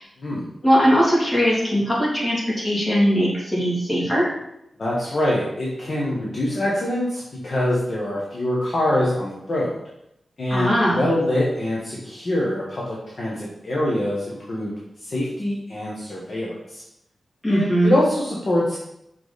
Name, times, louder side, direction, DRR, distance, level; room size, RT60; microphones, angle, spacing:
voice 1, 0.6-4.3 10.5-11.0 17.4-17.9, equal, 20° left, -7 dB, 2.7 m, -20 dB
voice 2, 4.8-9.8 10.4-14.7 15.0-16.8 17.5-18.8, left 1 dB, 45° left, -5 dB, 1.3 m, -24 dB
5.8 x 5.2 x 4.1 m, 0.82 s
wide cardioid pair, 125°, 0 cm